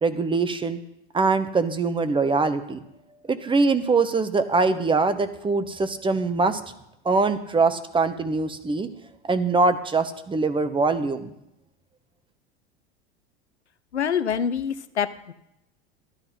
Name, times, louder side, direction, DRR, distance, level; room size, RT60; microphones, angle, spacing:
voice 1, 0.0-0.8 1.1-2.8 3.3-6.6 7.0-8.9 9.3-11.3, right 3 dB, 15° right, 10 dB, 1.1 m, -23 dB
voice 2, 13.9-15.3, left 7 dB, 85° left, 12 dB, 0.8 m, -26 dB
12.5 x 12.0 x 4.4 m, 0.85 s
figure-of-eight pair, 85°, 33 cm